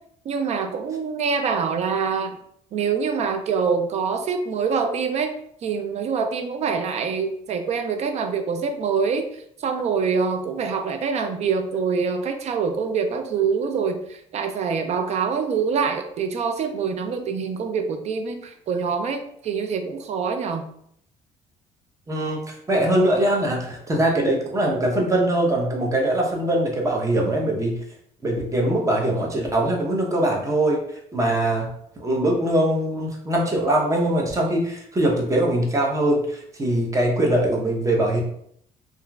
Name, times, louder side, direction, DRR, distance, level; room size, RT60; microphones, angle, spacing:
voice 1, 0.3-2.4 2.7-5.4 5.6-20.7, right 5 dB, 50° right, 7 dB, 0.4 m, -25 dB
voice 2, 22.1-22.4 22.7-27.7 28.2-30.8 31.1-31.7 32.0-38.2, right 1 dB, 20° right, -1 dB, 0.8 m, -22 dB
2.8 x 2.4 x 2.3 m, 0.69 s
cardioid pair, 90°, 14 cm